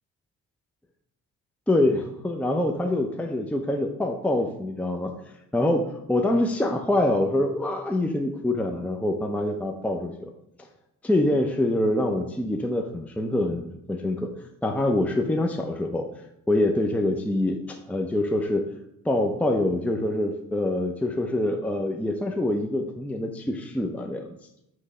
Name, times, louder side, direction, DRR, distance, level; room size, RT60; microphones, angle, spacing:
voice 1, 1.7-5.1 5.5-10.1 11.0-14.3 14.6-16.1 16.5-18.6 19.0-24.3, left 1 dB, 5° left, 3 dB, 0.6 m, -25 dB
7.8 x 3.2 x 4.9 m, 0.81 s
cardioid pair, 90°, 30 cm